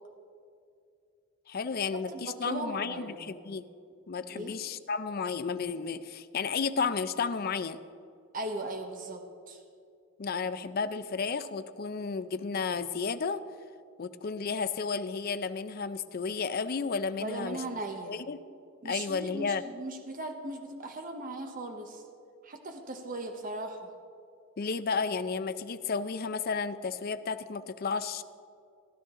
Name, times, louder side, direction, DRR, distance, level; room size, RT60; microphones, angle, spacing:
voice 1, 1.5-3.7 4.1-7.8 10.2-13.4 14.0-17.6 18.1-18.4 18.8-19.6 24.6-28.2, left 5 dB, 45° left, 12 dB, 0.4 m, -32 dB
voice 2, 2.1-3.2 4.3-4.6 8.3-9.6 17.2-18.2 18.8-22.0 22.4-23.9, right 2 dB, 40° right, 4 dB, 0.9 m, -38 dB
16.0 x 11.5 x 3.7 m, 2.4 s
head